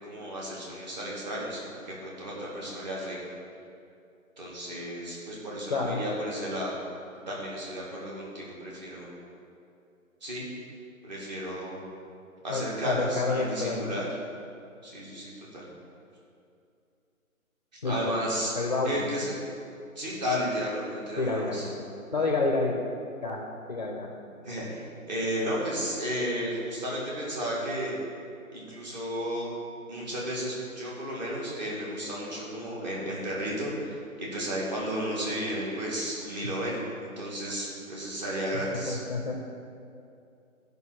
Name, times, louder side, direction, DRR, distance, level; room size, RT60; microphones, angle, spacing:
voice 1, 0.0-3.2 4.4-6.7 7.3-9.1 10.2-10.5 11.0-11.9 12.4-14.1 14.8-15.7 17.8-18.5 18.8-19.3 20.0-21.7 24.4-27.9 28.5-29.5 29.9-36.8 37.2-39.0, equal, 30° right, -4 dB, 2.3 m, -33 dB
voice 2, 12.5-13.9 17.8-18.2 18.6-19.1 21.2-21.7 22.1-22.8 23.2-23.4 23.7-24.1 36.4-36.5 38.7-39.3, left 3 dB, 30° left, 1 dB, 0.7 m, -29 dB
13.0 x 5.4 x 6.2 m, 2.5 s
hypercardioid pair, 165°, 42 cm